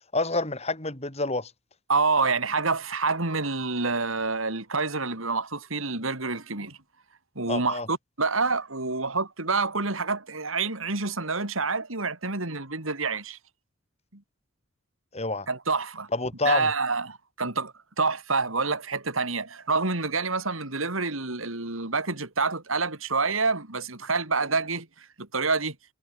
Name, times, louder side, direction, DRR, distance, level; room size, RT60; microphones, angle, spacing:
voice 1, 0.1-1.5 7.5-7.9 15.1-15.5 16.1-16.7, left 2 dB, 30° left, 4.1 m, -28 dB
voice 2, 1.9-6.8 7.4-13.4 14.1-14.2 15.5-16.1 16.4-25.8, right 4 dB, 90° right, 4.2 m, -27 dB
head